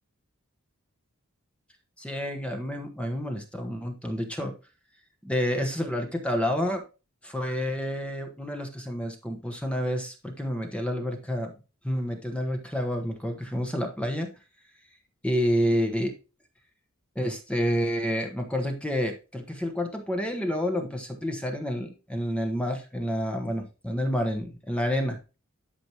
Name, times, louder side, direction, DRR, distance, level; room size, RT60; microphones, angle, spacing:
voice 1, 2.0-4.5 5.2-6.8 7.2-11.5 11.8-14.3 15.2-16.1 17.1-25.2, equal, 5° left, 4 dB, 1.1 m, -29 dB
11.5 x 6.1 x 3.0 m, 0.31 s
head